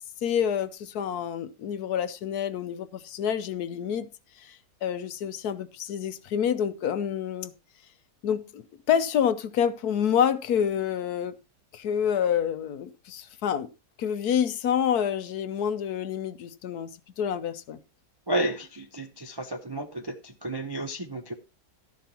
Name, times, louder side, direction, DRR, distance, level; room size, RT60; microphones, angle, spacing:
voice 1, 0.2-4.1 4.5-7.5 8.2-11.3 11.7-13.7 14.0-17.8, left 8 dB, 70° left, 1.2 m, -28 dB
voice 2, 18.3-21.3, right 1 dB, 30° right, 0.4 m, -32 dB
13.0 x 10.5 x 2.9 m
omnidirectional pair, 1.8 m